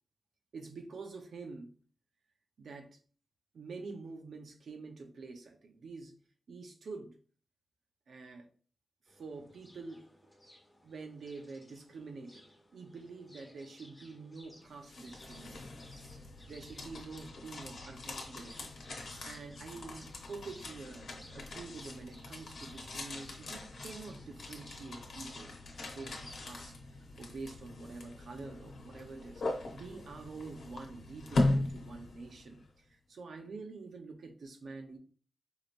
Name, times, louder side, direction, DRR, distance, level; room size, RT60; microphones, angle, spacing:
voice 1, 0.5-1.8 2.6-3.0 3.5-6.1 6.5-7.2 8.1-8.5 9.1-10.0 10.8-12.4 12.7-15.9 16.5-18.7 19.2-25.6 25.9-26.7 27.2-35.0, right 3 dB, 75° right, 4 dB, 0.8 m, -47 dB
sound 1, 9.1-26.6, left 1 dB, 10° left, 1.2 m, -59 dB
sound 2, 14.6-32.6, left 2 dB, 75° left, 1.0 m, -40 dB
4.9 x 3.0 x 2.5 m, 0.41 s
wide cardioid pair, 130°, 0 cm